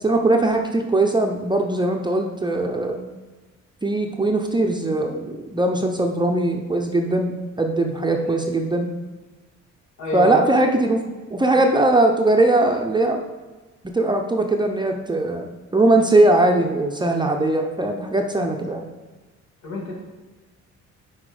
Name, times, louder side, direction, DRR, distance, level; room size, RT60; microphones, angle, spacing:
voice 1, 0.0-3.0 3.8-8.9 10.1-11.0 11.3-13.2 13.9-15.5 15.7-18.8, right 2 dB, 15° right, 3 dB, 0.6 m, -20 dB
voice 2, 10.0-10.4 19.6-19.9, left 1 dB, 65° left, -1 dB, 2.0 m, -28 dB
5.9 x 4.4 x 4.9 m, 1.2 s
cardioid pair, 90°, 30 cm